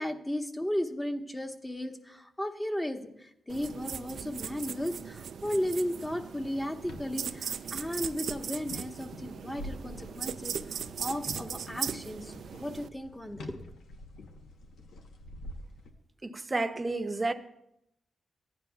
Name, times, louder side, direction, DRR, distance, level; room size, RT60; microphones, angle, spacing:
voice 1, 0.0-13.6, left 1 dB, 15° left, 1.1 m, -35 dB
sound 1, 3.5-12.9, right 7 dB, 75° right, 0.4 m, -38 dB
sound 2, 6.8-15.9, left 1 dB, 85° left, 0.9 m, -47 dB
voice 2, 16.2-17.3, right 2 dB, 35° right, 0.8 m, -31 dB
15.0 x 9.9 x 2.3 m
cardioid pair, 55°, 0 cm